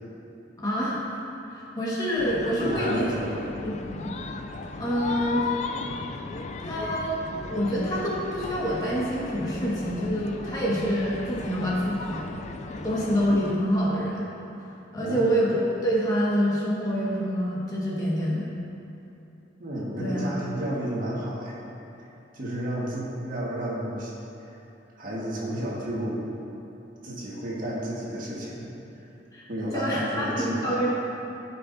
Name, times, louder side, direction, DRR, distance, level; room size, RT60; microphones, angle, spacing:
voice 1, 0.6-1.0 1.5-3.1 3.6-4.1 4.8-5.5 5.9-6.1 6.6-7.2 7.4-12.3 12.7-14.3 14.9-18.5 20.0-20.4 29.3-30.9, equal, 20° left, -7 dB, 1.6 m, -27 dB
sound 1, 2.2-13.6, left 3 dB, 40° left, 0.4 m, -36 dB
voice 2, 2.6-3.3 4.7-4.8 14.9-15.2 19.6-21.6 22.0-22.1 22.3-24.1 24.4-24.6 24.9-26.3 27.0-28.7 28.9-29.0 29.5-30.8, right 1 dB, 50° right, -6 dB, 1.6 m, -32 dB
14.5 x 5.6 x 2.7 m, 2.9 s
head